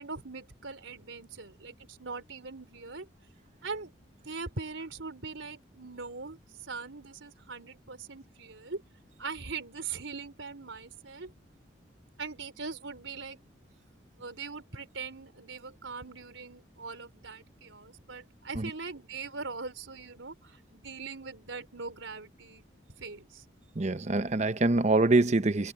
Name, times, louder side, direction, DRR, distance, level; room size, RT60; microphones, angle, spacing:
voice 1, 0.0-3.1 3.6-3.9 4.2-8.8 9.2-11.3 12.2-13.4 14.2-22.6 23.0-23.4, right 4 dB, 90° right, 3.7 m, -41 dB
voice 2, 23.8-25.7, right 2 dB, 35° right, 0.7 m, -25 dB
head